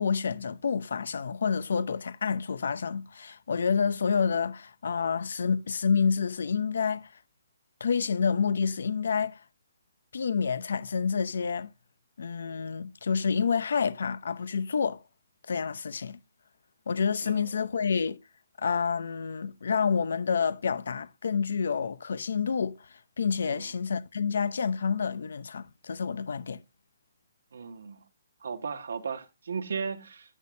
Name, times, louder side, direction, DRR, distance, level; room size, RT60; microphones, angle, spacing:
voice 1, 0.0-7.1 7.8-9.4 10.1-11.7 12.2-15.0 15.5-16.2 16.9-18.2 18.6-22.9 23.2-26.6, left 6 dB, 70° left, 0.7 m, -28 dB
voice 2, 27.5-28.0 28.4-30.4, right 5 dB, 75° right, 1.8 m, -36 dB
11.0 x 8.4 x 2.7 m
hypercardioid pair, 170°, 0 cm